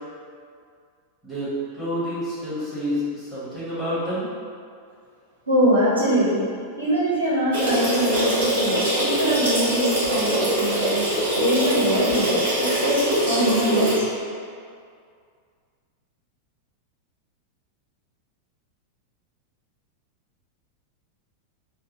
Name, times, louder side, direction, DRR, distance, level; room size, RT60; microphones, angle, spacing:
voice 1, 1.2-4.3, equal, ahead, -12 dB, 1.4 m, -28 dB
voice 2, 5.5-6.5 6.8-11.1 11.4-14.1, equal, 80° right, -9 dB, 0.9 m, -23 dB
sound 1, 7.5-14.0, right 1 dB, 60° right, 1.4 m, -23 dB
3.5 x 2.2 x 3.1 m, 2.2 s
figure-of-eight pair, 90°, 0 cm